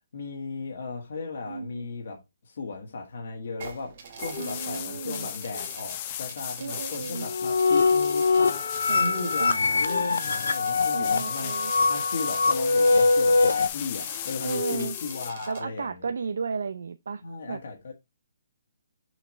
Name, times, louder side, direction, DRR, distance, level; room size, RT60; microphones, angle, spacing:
voice 1, 0.1-2.2 2.4-16.1 17.2-17.9, left 4 dB, 45° left, 1.5 m, -36 dB
voice 2, 1.5-1.9 4.4-5.3 6.6-7.3 8.9-9.8 10.9-11.7 14.4-14.9 15.5-17.2 17.5-17.6, right 5 dB, 60° right, 0.5 m, -34 dB
sound 1, 3.6-15.6, right 5 dB, 30° right, 1.4 m, -47 dB
sound 2, 4.2-15.3, left 11 dB, 20° left, 0.5 m, -36 dB
sound 3, 7.1-13.7, left 4 dB, 80° left, 0.7 m, -23 dB
6.3 x 5.6 x 3.1 m
hypercardioid pair, 180°, 0 cm